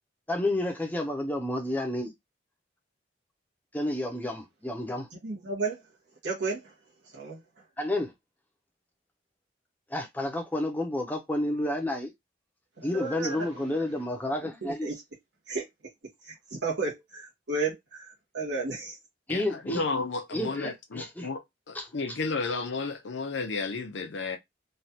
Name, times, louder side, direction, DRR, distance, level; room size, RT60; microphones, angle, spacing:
voice 1, 0.3-2.1 3.7-5.1 7.8-8.1 9.9-12.1 12.8-14.9 19.3-19.8 20.3-21.3 21.7-22.2, left 1 dB, 10° left, 0.5 m, -30 dB
voice 2, 5.2-5.8 6.2-6.7 7.1-7.4 12.8-13.5 14.6-14.9 15.5-15.7 16.2-19.0, right 3 dB, 75° right, 1.1 m, -33 dB
voice 3, 19.3-21.4 21.7-24.4, left 3 dB, 80° left, 0.6 m, -32 dB
3.2 x 2.3 x 2.7 m
head